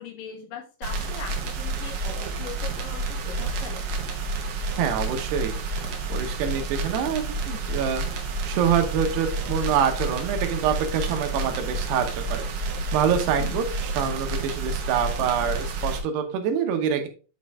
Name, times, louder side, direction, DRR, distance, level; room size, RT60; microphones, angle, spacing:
voice 1, 0.0-3.8 13.4-13.6, left 7 dB, 65° left, 2 dB, 2.7 m, -40 dB
sound 1, 0.8-16.0, right 2 dB, 65° right, 2.5 m, -30 dB
voice 2, 4.7-5.6 6.1-8.0 8.4-12.5 12.9-17.1, right 7 dB, 80° right, 6 dB, 3.1 m, -26 dB
8.5 x 4.5 x 3.5 m, 0.36 s
omnidirectional pair, 4.7 m